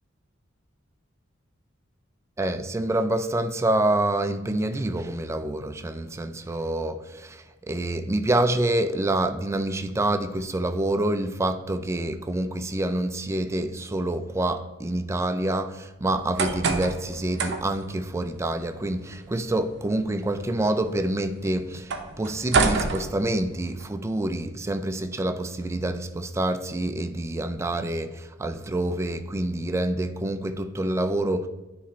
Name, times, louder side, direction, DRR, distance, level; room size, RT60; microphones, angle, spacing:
voice 1, 2.4-31.5, right 1 dB, 15° right, 0.3 m, -27 dB
sound 1, 16.1-23.8, right 4 dB, 55° right, 0.6 m, -30 dB
9.0 x 3.1 x 4.1 m
head